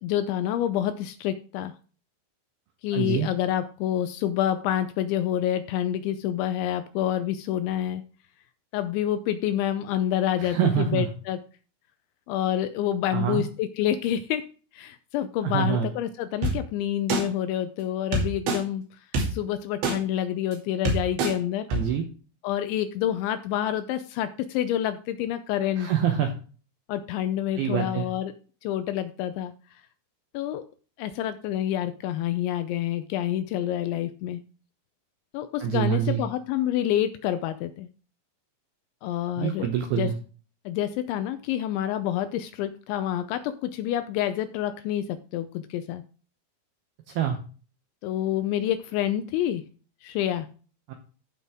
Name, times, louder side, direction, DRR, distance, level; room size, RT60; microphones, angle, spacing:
voice 1, 0.0-1.7 2.8-8.1 8.7-11.4 12.3-14.4 14.7-18.8 19.3-21.7 22.4-25.9 26.9-28.3 28.6-29.5 30.3-30.6 31.0-34.4 35.3-37.9 39.0-39.7 40.0-40.1 40.7-46.0 48.0-49.6 50.0-50.5, left 11 dB, 80° left, 10 dB, 2.7 m, -28 dB
voice 2, 2.9-3.3 10.4-11.1 13.1-13.4 15.4-15.9 21.7-22.0 25.8-26.3 27.6-28.1 35.6-36.2 39.4-40.1 47.2-47.4 50.9-51.0, right 9 dB, 80° right, 5 dB, 2.2 m, -25 dB
sound 1, 16.4-16.5 17.1-17.2 18.1-18.6 19.1-19.3 19.8-19.9 20.5-20.6 20.9-21.3 21.7-21.8, right 2 dB, 60° right, 4.6 m, -24 dB
14.5 x 5.7 x 3.6 m, 0.38 s
omnidirectional pair, 5.8 m